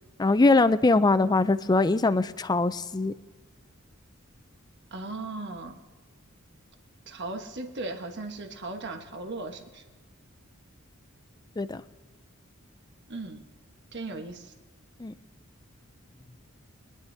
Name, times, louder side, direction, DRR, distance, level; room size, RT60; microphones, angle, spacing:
voice 1, 0.2-3.1 11.6-11.8 15.0-15.1, left 3 dB, 20° left, 13 dB, 0.4 m, -22 dB
voice 2, 4.9-5.8 7.1-9.8 13.1-13.4 13.9-14.5, right 2 dB, 55° right, 4 dB, 1.2 m, -37 dB
24.0 x 10.5 x 2.7 m, 1.3 s
head